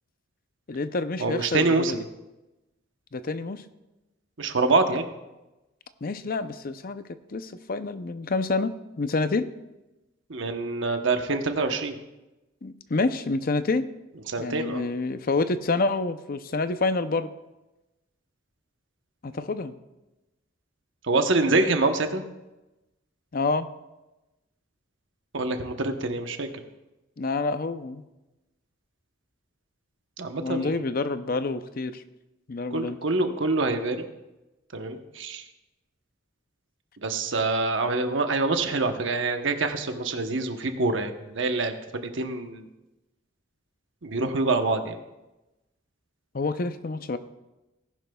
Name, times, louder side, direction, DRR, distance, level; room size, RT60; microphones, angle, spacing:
voice 1, 0.7-2.1 3.1-3.6 6.0-7.0 7.3-9.5 12.6-13.9 14.4-17.3 19.2-19.7 23.3-23.7 27.2-28.0 30.3-32.0 32.5-33.0 46.3-47.2, left 3 dB, 45° left, 11 dB, 0.6 m, -28 dB
voice 2, 1.2-2.0 4.4-5.1 10.3-12.0 14.3-14.8 21.0-22.2 25.3-26.5 30.2-30.8 32.7-34.1 34.7-35.4 37.0-42.7 44.0-45.0, right 3 dB, 65° right, 6 dB, 1.0 m, -26 dB
18.0 x 10.5 x 2.3 m, 1.0 s
head